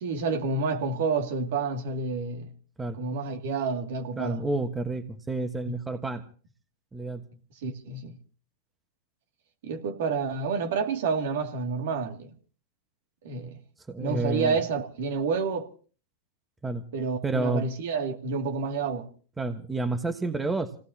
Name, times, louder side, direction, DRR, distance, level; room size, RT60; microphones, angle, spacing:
voice 1, 0.0-2.5 3.0-4.4 5.7-5.8 7.6-8.2 9.6-12.3 13.2-13.6 14.0-15.7 16.9-19.1, right 4 dB, 70° right, 2.5 m, -29 dB
voice 2, 4.2-6.2 6.9-7.2 13.9-14.6 16.6-16.8 17.2-17.7 19.4-20.7, right 2 dB, 10° right, 1.4 m, -29 dB
27.0 x 18.0 x 2.9 m
hypercardioid pair, 120°, 0 cm